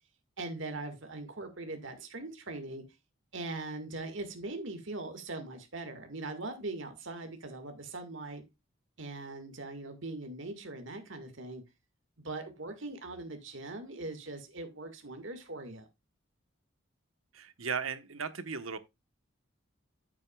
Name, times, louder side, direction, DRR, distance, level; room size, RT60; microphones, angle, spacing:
voice 1, 0.4-2.8 3.3-8.4 9.0-11.6 12.2-15.9, right 2 dB, 70° right, 1.9 m, -41 dB
voice 2, 17.3-18.8, right 5 dB, 90° right, 1.2 m, -36 dB
10.0 x 8.3 x 2.4 m
head